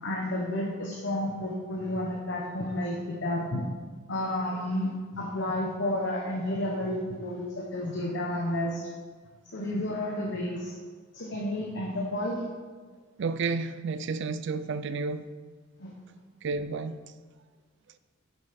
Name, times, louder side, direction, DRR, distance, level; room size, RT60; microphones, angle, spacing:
voice 1, 0.0-3.6 4.1-8.8 9.5-10.7 11.1-12.4 15.8-15.9, left 1 dB, 60° left, 1.1 m, -31 dB
voice 2, 13.2-15.3 16.4-17.0, right 4 dB, 60° right, 0.4 m, -31 dB
7.9 x 6.1 x 5.2 m
head